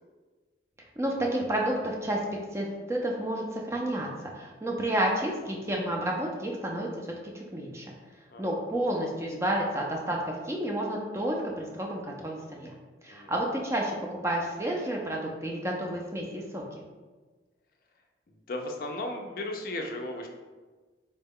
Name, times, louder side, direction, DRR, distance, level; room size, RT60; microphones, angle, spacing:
voice 1, 1.0-2.2 2.5-4.1 4.3-6.9 7.3-7.9 8.4-10.2 10.4-12.7 13.0-16.8, right 1 dB, 15° right, -1 dB, 0.4 m, -30 dB
voice 2, 18.5-20.3, left 1 dB, 50° left, 3 dB, 0.4 m, -35 dB
3.9 x 2.2 x 3.5 m, 1.3 s
head